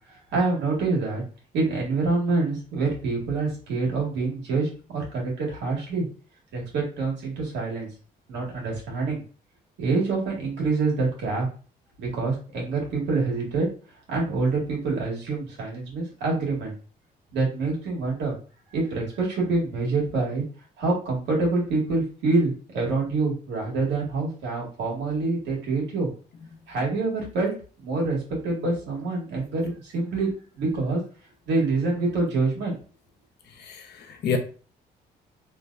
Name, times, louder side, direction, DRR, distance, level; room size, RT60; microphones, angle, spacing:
voice 1, 0.1-1.2 1.5-6.1 6.5-7.9 8.3-9.2 9.8-11.5 12.0-13.7 14.1-16.7 17.3-18.3 18.7-20.4 20.8-26.1 26.7-27.5 27.8-28.2 28.4-30.3 30.5-31.0 31.5-32.8, right 3 dB, 85° right, 1.7 m, -26 dB
voice 2, 33.6-34.4, left 6 dB, 70° left, 0.8 m, -29 dB
3.3 x 2.8 x 2.4 m
cardioid pair, 80°, 18 cm